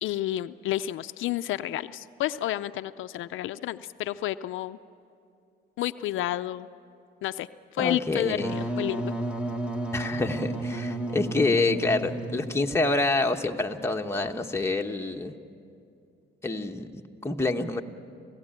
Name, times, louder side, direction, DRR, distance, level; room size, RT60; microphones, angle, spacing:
voice 1, 0.0-4.8 5.8-6.7 7.2-7.5 7.7-9.1, left 13 dB, 80° left, 11 dB, 0.5 m, -30 dB
voice 2, 7.8-8.6 9.9-15.3 16.4-17.8, left 2 dB, 15° left, 3 dB, 1.3 m, -27 dB
Wind instrument woodwind instrument, 8.3-12.9, right 2 dB, 5° right, 1.7 m, -32 dB
27.5 x 16.5 x 9.0 m, 2.5 s
cardioid pair, 90°, 20 cm